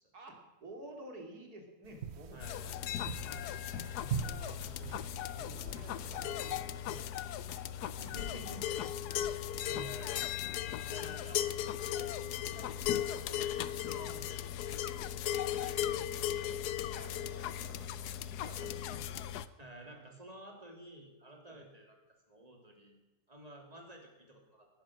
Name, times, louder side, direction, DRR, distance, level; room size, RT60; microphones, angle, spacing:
voice 1, 0.1-3.5 4.1-4.7 5.6-7.2 8.0-8.6 10.9-11.0 16.9-17.2 17.6-17.8 18.4-18.9 19.8-20.0 21.5-21.6, right 1 dB, 70° right, 3 dB, 3.0 m, -52 dB
sound 1, 1.8-6.9, right 7 dB, 50° right, 1.0 m, -43 dB
voice 2, 2.3-2.6 4.5-6.0 8.0-8.8 9.6-10.3 10.9-11.4 11.9-16.1 17.1-18.1 19.6-22.0 22.3-23.0 23.3-24.7, right 1 dB, 25° right, 2 dB, 3.0 m, -53 dB
sound 2, 2.4-19.5, left 11 dB, 80° left, 1.2 m, -37 dB
18.0 x 11.5 x 6.3 m, 1.0 s
omnidirectional pair, 1.7 m